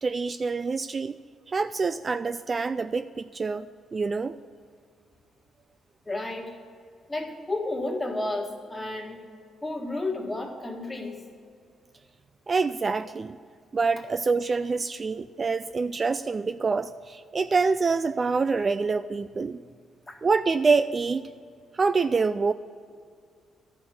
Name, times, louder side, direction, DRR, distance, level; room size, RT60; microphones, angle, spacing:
voice 1, 0.0-1.1 1.5-3.7 3.9-4.4 12.5-13.4 13.7-19.6 20.2-21.2 21.7-22.5, right 4 dB, 35° right, 12 dB, 0.3 m, -26 dB
voice 2, 6.1-6.6 7.1-9.2 9.6-11.2 20.1-20.2, left 2 dB, 15° left, 1 dB, 1.8 m, -32 dB
12.0 x 6.0 x 9.2 m, 2.2 s
cardioid pair, 90°, 0 cm